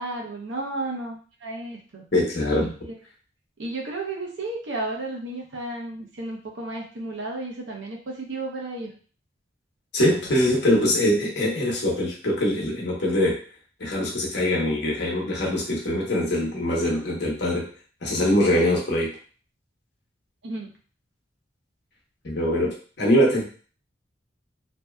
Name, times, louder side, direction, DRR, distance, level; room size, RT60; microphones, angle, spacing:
voice 1, 0.0-2.0 3.6-8.9 20.4-20.7, right 2 dB, 80° right, 0 dB, 0.7 m, -33 dB
voice 2, 2.1-2.7 9.9-13.4 13.8-17.7 18.0-19.1 22.2-23.5, left 1 dB, 65° left, -3 dB, 0.8 m, -23 dB
2.6 x 2.3 x 2.2 m, 0.40 s
head